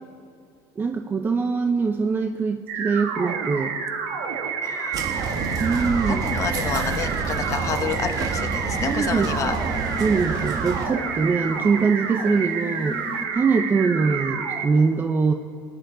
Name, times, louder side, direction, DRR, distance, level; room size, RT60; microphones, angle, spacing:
voice 1, 0.8-3.7 5.6-6.2 8.9-9.5 10.0-13.0 13.3-15.3, right 4 dB, 25° right, 5 dB, 0.6 m, -23 dB
sound 1, 2.7-14.7, right 6 dB, 80° right, 1.6 m, -29 dB
voice 2, 4.6-5.2 6.1-9.5, left 6 dB, 40° left, 7 dB, 1.1 m, -29 dB
sound 2, 4.9-10.9, right 5 dB, 50° right, 1.4 m, -29 dB
sound 3, 7.2-13.3, left 2 dB, 15° left, 1.2 m, -39 dB
19.0 x 10.5 x 3.9 m, 2.4 s
supercardioid pair, 110°, 8 cm